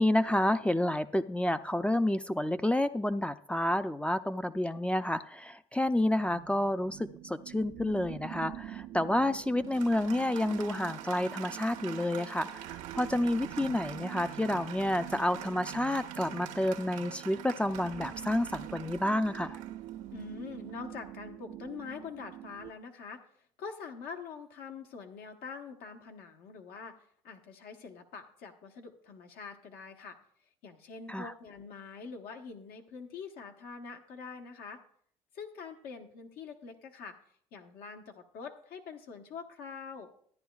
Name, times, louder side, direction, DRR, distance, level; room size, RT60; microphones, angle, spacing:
voice 1, 0.0-7.0 7.2-12.5 12.9-19.6 31.1-31.3, left 1 dB, 5° left, 11 dB, 0.4 m, -29 dB
sound 1, 6.2-22.7, right 13 dB, 65° right, 0.5 m, -45 dB
Applause, 9.1-21.0, right 10 dB, 90° right, 1.1 m, -46 dB
voice 2, 20.1-23.2 23.6-30.2 30.6-34.8 35.3-37.2 37.5-40.1, left 5 dB, 70° left, 4 dB, 1.2 m, -45 dB
14.0 x 10.0 x 2.4 m, 0.65 s
supercardioid pair, 70°, 16 cm